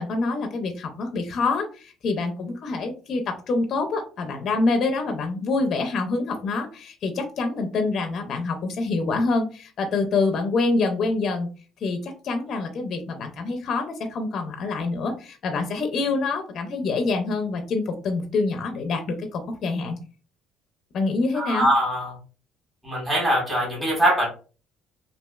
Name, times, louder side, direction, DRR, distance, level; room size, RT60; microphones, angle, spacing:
voice 1, 0.0-11.5 11.8-20.0 20.9-21.7, left 3 dB, 40° left, 4 dB, 0.4 m, -26 dB
voice 2, 21.3-22.1 22.8-24.3, equal, 10° right, -4 dB, 1.4 m, -22 dB
3.0 x 2.6 x 2.2 m, 0.37 s
cardioid pair, 165°, 0 cm